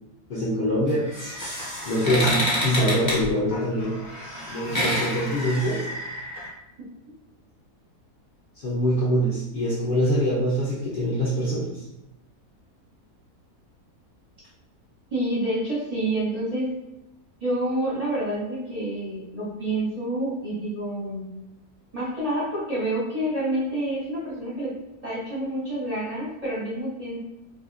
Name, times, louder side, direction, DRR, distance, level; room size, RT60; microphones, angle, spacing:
voice 1, 0.3-1.1 1.9-3.9 4.5-5.9 8.6-11.9, equal, 60° left, -7 dB, 0.6 m, -24 dB
sound 1, 0.9-6.5, equal, 20° left, 0.6 m, -29 dB
voice 2, 15.1-16.7 17.4-21.3 21.9-24.7 25.0-27.2, right 1 dB, 40° right, -8 dB, 0.6 m, -28 dB
2.7 x 2.6 x 2.5 m, 0.92 s
omnidirectional pair, 1.7 m